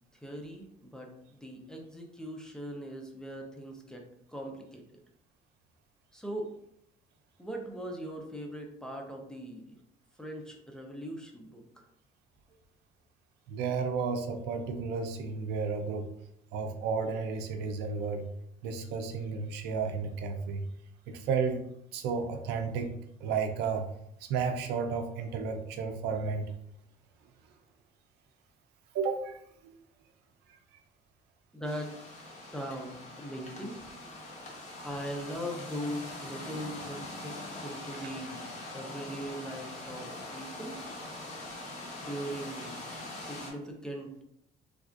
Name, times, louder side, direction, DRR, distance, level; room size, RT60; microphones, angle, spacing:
voice 1, 0.1-4.8 6.1-6.5 7.4-9.8 10.2-11.6 31.5-31.9 32.5-33.8 34.8-37.4 37.6-40.8 42.0-42.7 43.1-44.2, equal, 5° left, 1 dB, 0.5 m, -40 dB
voice 2, 13.5-16.1 16.5-18.3 18.6-20.6 21.1-21.6 21.9-22.9 23.2-23.9 24.3-26.4 28.9-29.4, right 5 dB, 90° right, 6 dB, 0.5 m, -32 dB
sound 1, 31.6-43.5, left 2 dB, 45° left, 0.9 m, -43 dB
3.3 x 2.4 x 2.4 m, 0.73 s
cardioid pair, 110°, 17 cm